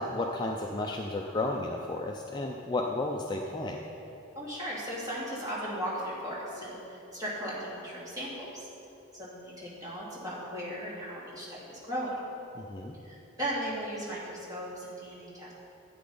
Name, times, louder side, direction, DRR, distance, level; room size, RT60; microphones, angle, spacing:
voice 1, 0.0-3.8 12.6-12.9, left 2 dB, 20° left, 1 dB, 0.4 m, -33 dB
voice 2, 4.3-8.7 9.1-12.2 13.0-15.5, equal, 15° right, -8 dB, 2.4 m, -37 dB
12.0 x 8.8 x 3.9 m, 3.0 s
head